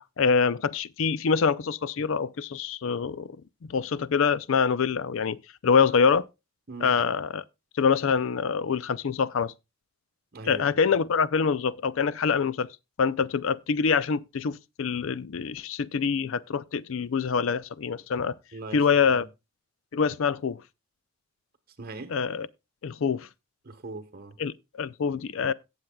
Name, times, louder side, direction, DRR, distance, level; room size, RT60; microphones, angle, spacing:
voice 1, 0.0-3.3 3.7-5.4 5.6-6.2 6.8-7.4 7.8-9.5 10.5-12.7 13.0-18.3 18.7-19.3 19.9-20.6 22.1-22.5 22.8-23.3 24.4-25.5, left 6 dB, 70° left, 0.4 m, -25 dB
voice 2, 6.7-7.0 10.3-10.8 18.5-19.3 21.8-22.2 23.6-24.4, right 3 dB, 45° right, 1.2 m, -41 dB
17.5 x 7.3 x 2.3 m
head